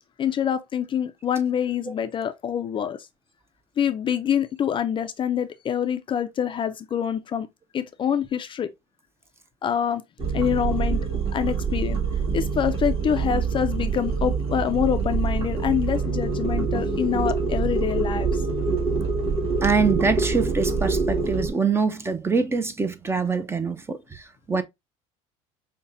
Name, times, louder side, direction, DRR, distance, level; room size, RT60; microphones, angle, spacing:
voice 1, 0.2-3.0 3.8-7.5 7.7-8.7 9.6-10.0 10.3-12.0 12.3-18.4, left 8 dB, 35° left, 0.4 m, -26 dB
sound 1, 10.2-21.5, right 4 dB, 35° right, 1.8 m, -25 dB
voice 2, 19.6-24.2 24.5-24.6, right 4 dB, 15° right, 0.5 m, -24 dB
5.3 x 2.2 x 2.5 m
supercardioid pair, 100°, 15 cm